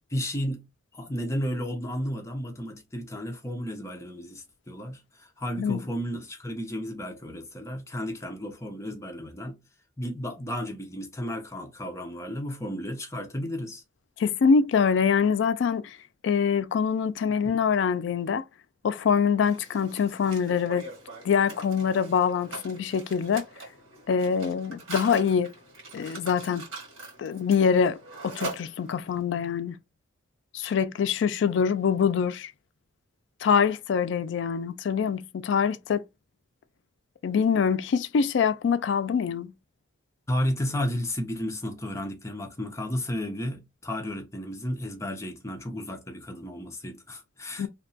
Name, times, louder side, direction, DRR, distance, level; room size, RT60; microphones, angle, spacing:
voice 1, 0.1-0.7 0.9-9.6 10.0-13.8 40.3-47.7, equal, 15° left, 0.5 m, -33 dB
voice 2, 14.2-16.0 16.2-18.4 18.8-20.8 21.2-23.5 24.1-25.5 25.9-26.6 27.2-28.0 28.2-29.8 30.5-32.5 33.4-36.0 37.2-39.5 47.6-47.7, left 6 dB, 65° left, 0.3 m, -24 dB
Mechanisms, 19.4-29.2, right 2 dB, 85° right, 1.4 m, -42 dB
2.8 x 2.2 x 2.6 m
head